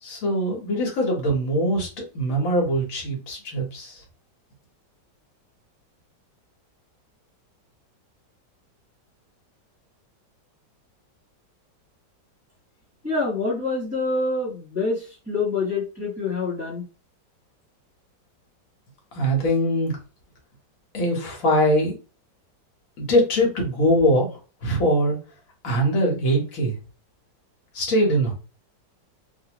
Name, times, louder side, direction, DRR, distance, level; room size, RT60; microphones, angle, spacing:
voice 1, 0.0-4.0 19.1-20.0 20.9-22.0 23.0-25.2 25.6-26.8 27.7-28.3, equal, 50° left, 0 dB, 1.4 m, -22 dB
voice 2, 13.0-16.9, left 3 dB, 10° right, -5 dB, 1.0 m, -26 dB
2.9 x 2.6 x 2.9 m, 0.34 s
omnidirectional pair, 2.0 m